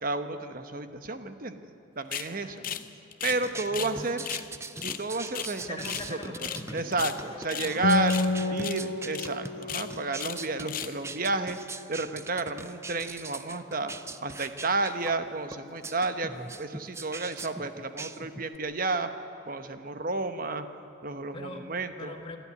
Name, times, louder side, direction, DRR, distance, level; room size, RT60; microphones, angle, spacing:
voice 1, 0.0-2.7 3.2-4.3 4.8-6.2 6.7-8.2 8.5-11.6 11.9-13.9 14.2-19.1 19.5-20.7 21.0-22.1, right 3 dB, 45° right, 9 dB, 1.0 m, -31 dB
sound 1, 2.1-2.3 2.6-3.9 4.2-4.5 4.8-6.1 6.4-6.6 6.9-7.7 8.1-8.3 8.6-8.8 9.1-9.3 9.6-10.4 10.7-11.0, left 10 dB, 45° left, 0.7 m, -36 dB
voice 2, 2.2-2.9 3.2-4.5 5.7-7.0 7.2-8.7 21.3-21.7 22.0-22.4, left 1 dB, 25° left, 2 dB, 1.7 m, -44 dB
sound 2, 3.2-18.6, right 3 dB, 15° right, 0.5 m, -41 dB
Acoustic guitar, 7.8-11.6, left 2 dB, 60° left, 1.3 m, -31 dB
27.0 x 11.5 x 9.6 m, 2.8 s
head